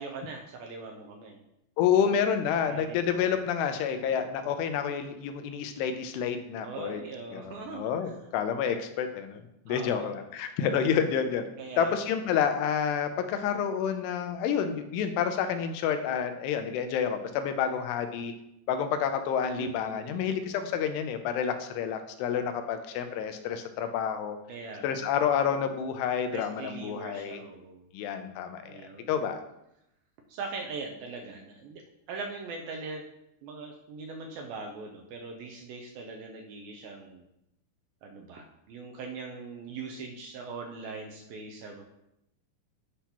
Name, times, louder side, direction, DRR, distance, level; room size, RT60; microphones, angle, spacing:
voice 1, 0.0-1.4 2.6-3.0 6.6-8.2 8.6-8.8 9.7-10.2 11.6-11.9 19.6-20.5 24.5-25.1 26.3-27.8 28.6-29.1 30.3-31.8 32.1-33.0 33.4-37.3 38.0-41.8, right 4 dB, 80° right, 2 dB, 2.2 m, -41 dB
voice 2, 1.8-7.0 7.3-11.5 11.8-18.3 18.7-24.4 24.8-27.4 27.9-28.8 29.1-29.4, left 7 dB, 85° left, 7 dB, 2.7 m, -29 dB
10.0 x 5.6 x 2.9 m, 0.84 s
omnidirectional pair, 4.8 m